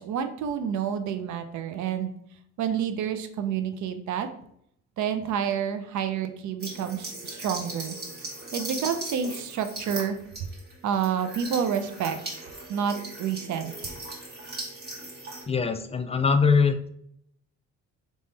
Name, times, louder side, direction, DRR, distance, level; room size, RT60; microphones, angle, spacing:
voice 1, 0.0-2.1 2.6-4.3 5.0-8.0 8.5-10.2 10.8-14.0, right 8 dB, 70° right, 8 dB, 0.6 m, -29 dB
sound 1, 6.6-15.4, right 2 dB, 30° right, 1.8 m, -38 dB
voice 2, 15.5-16.9, left 5 dB, 20° left, 8 dB, 0.5 m, -22 dB
3.7 x 3.1 x 4.0 m, 0.69 s
cardioid pair, 90°, 30 cm